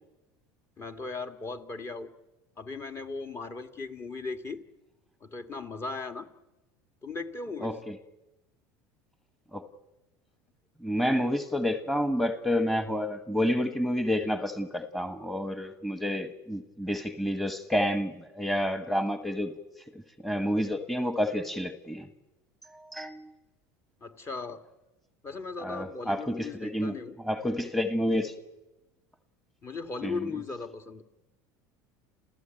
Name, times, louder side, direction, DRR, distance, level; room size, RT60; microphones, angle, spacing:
voice 1, 0.8-2.1 2.6-4.6 5.2-6.3 7.0-7.8 24.0-24.6 25.2-27.2 29.6-31.0, left 4 dB, 30° left, 7 dB, 1.7 m, -37 dB
voice 2, 7.6-8.0 9.5-9.7 10.8-19.5 20.2-22.1 22.7-23.3 25.6-28.3 30.0-30.3, equal, ahead, 11 dB, 1.3 m, -29 dB
29.0 x 15.5 x 9.1 m, 1.0 s
supercardioid pair, 110°, 9 cm